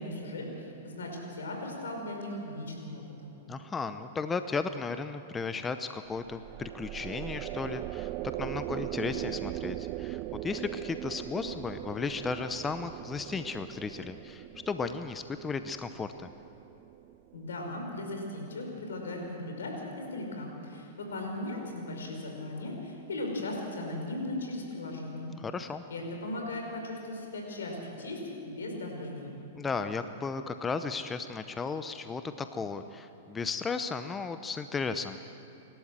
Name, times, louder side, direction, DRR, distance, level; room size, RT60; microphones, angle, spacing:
voice 1, 0.0-3.3 17.3-25.3 25.9-29.3, left 1 dB, 85° left, 1 dB, 5.3 m, -37 dB
voice 2, 3.5-8.1 8.4-16.3 25.4-25.8 29.6-35.2, left 4 dB, 15° left, 10 dB, 0.8 m, -35 dB
sound 1, 6.1-17.5, right 16 dB, 40° right, 0.4 m, -40 dB
29.0 x 12.5 x 7.6 m, 2.7 s
hypercardioid pair, 115°, 0 cm